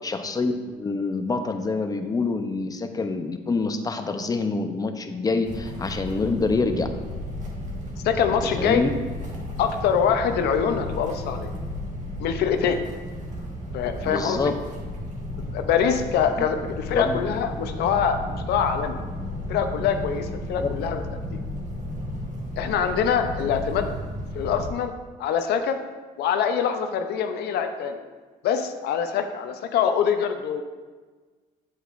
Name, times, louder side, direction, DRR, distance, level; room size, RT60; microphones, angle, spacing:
voice 1, 0.0-6.9 8.6-8.9 14.0-14.5 16.4-16.5 16.9-17.2 20.6-20.7, left 3 dB, 20° left, 7 dB, 0.6 m, -26 dB
sound 1, 5.4-24.7, left 1 dB, 45° right, 1.7 m, -33 dB
voice 2, 8.0-8.8 9.6-11.5 12.2-12.8 13.7-14.5 15.4-19.0 19.5-21.0 21.3-21.4 22.6-23.9 24.3-24.9 25.2-25.8 26.2-28.0 28.4-30.6, left 7 dB, 75° left, 7 dB, 0.6 m, -24 dB
8.1 x 8.1 x 2.5 m, 1.4 s
cardioid pair, 110°, 17 cm